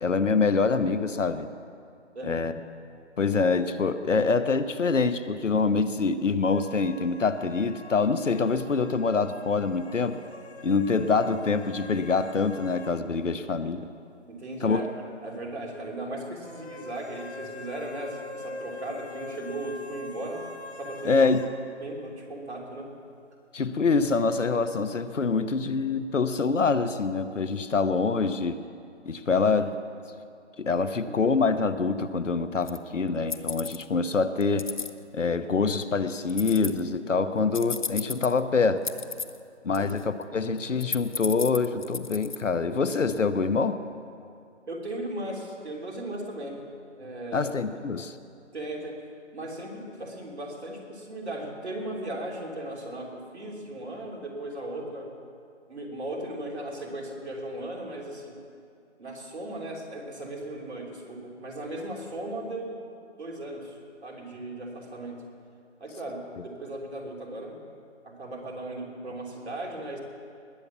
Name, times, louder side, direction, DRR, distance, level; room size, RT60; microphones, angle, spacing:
voice 1, 0.0-1.5 2.2-2.5 3.2-10.2 10.6-13.9 14.6-14.8 21.0-21.5 23.5-28.6 29.0-29.8 30.6-34.7 35.1-38.9 39.6-43.8 47.3-48.1, left 4 dB, 85° left, 12 dB, 1.0 m, -25 dB
voice 2, 2.1-2.5 14.3-14.8 15.2-20.5 20.8-21.2 21.8-22.9 30.8-31.2 39.7-39.9 44.7-46.6 47.0-47.5 48.5-49.0 49.3-55.1 55.7-58.4 59.0-62.8 63.2-65.2 65.8-67.6 68.0-70.0, right 1 dB, 60° right, 0 dB, 3.4 m, -37 dB
sound 1, 6.4-13.0 13.3-13.4 16.4-21.5, left 3 dB, 60° left, 1.4 m, -44 dB
sound 2, 32.7-32.8 33.3-33.8 34.4-34.9 36.3-36.8 37.5-38.4 38.8-39.4 39.7-40.2 40.6-42.4, left 5 dB, 40° left, 0.5 m, -33 dB
20.0 x 8.1 x 7.2 m, 2.4 s
figure-of-eight pair, 160°, 36 cm